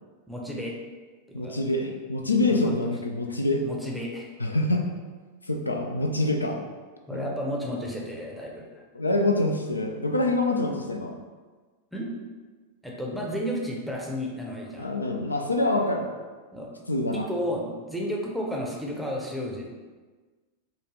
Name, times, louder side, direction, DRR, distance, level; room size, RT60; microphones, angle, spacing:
voice 1, 0.3-0.8 1.3-1.7 2.5-2.8 3.6-4.3 7.1-8.8 11.9-12.1 12.8-14.9 16.5-16.7 17.1-19.7, equal, ahead, -2 dB, 0.6 m, -32 dB
voice 2, 1.3-3.6 4.4-4.9 5.5-6.6 7.1-7.2 8.9-11.2 14.8-16.1 16.9-17.3, left 2 dB, 80° left, 2 dB, 0.3 m, -25 dB
3.7 x 2.3 x 3.0 m, 1.4 s
figure-of-eight pair, 90°, 0 cm